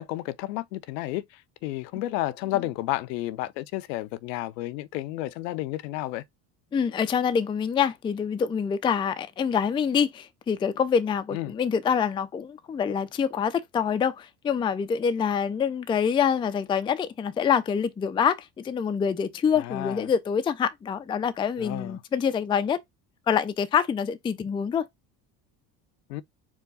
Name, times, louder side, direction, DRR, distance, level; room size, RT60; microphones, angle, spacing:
voice 1, 0.0-6.2 11.3-11.5 19.6-20.1 21.6-22.0 26.1-26.2, left 16 dB, 80° left, 0.6 m, -32 dB
voice 2, 6.7-22.8 23.3-24.9, left 7 dB, 10° left, 0.3 m, -26 dB
4.6 x 2.3 x 4.0 m
hypercardioid pair, 65°, 50 cm